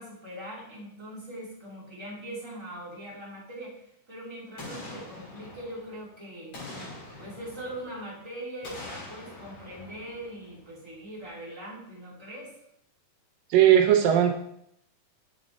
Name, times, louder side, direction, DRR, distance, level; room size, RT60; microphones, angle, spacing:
voice 1, 0.0-6.6 7.2-12.5, right 1 dB, 10° right, -7 dB, 2.0 m, -41 dB
Boom, 4.6-6.1 6.5-8.2 8.6-10.9 11.2-11.3, left 2 dB, 40° left, 4.7 m, -44 dB
voice 2, 13.5-14.3, right 10 dB, 80° right, 3 dB, 2.0 m, -18 dB
7.4 x 6.3 x 4.0 m, 0.73 s
omnidirectional pair, 4.8 m